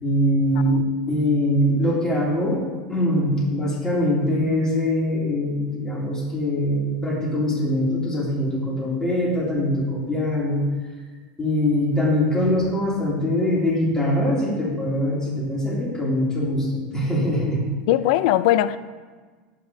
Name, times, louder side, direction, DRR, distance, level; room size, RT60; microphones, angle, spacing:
voice 1, 0.0-2.6 2.9-10.6 11.4-17.6, left 1 dB, 15° left, -5 dB, 2.8 m, -22 dB
voice 2, 17.9-18.8, left 13 dB, 65° left, 14 dB, 0.4 m, -19 dB
11.0 x 8.4 x 2.8 m, 1.4 s
supercardioid pair, 135°, 5 cm